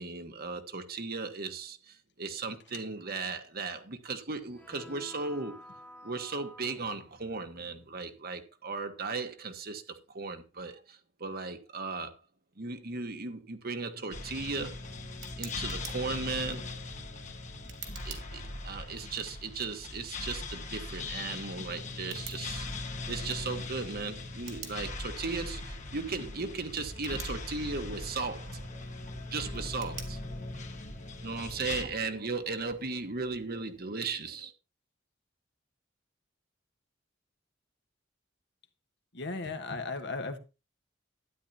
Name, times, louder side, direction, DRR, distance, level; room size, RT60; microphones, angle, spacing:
voice 1, 0.0-5.6 6.0-12.1 12.6-14.9 15.4-16.8 18.0-28.9 29.3-30.4 31.0-34.5, right 4 dB, 50° right, 1.3 m, -37 dB
sound 1, 4.4-8.2, left 1 dB, 10° left, 1.1 m, -52 dB
sound 2, 14.1-31.8, left 2 dB, 40° left, 1.5 m, -40 dB
Tick, 14.2-33.9, right 8 dB, 70° right, 2.6 m, -53 dB
voice 2, 39.1-40.4, left 3 dB, 60° left, 1.4 m, -36 dB
12.5 x 10.0 x 2.8 m
head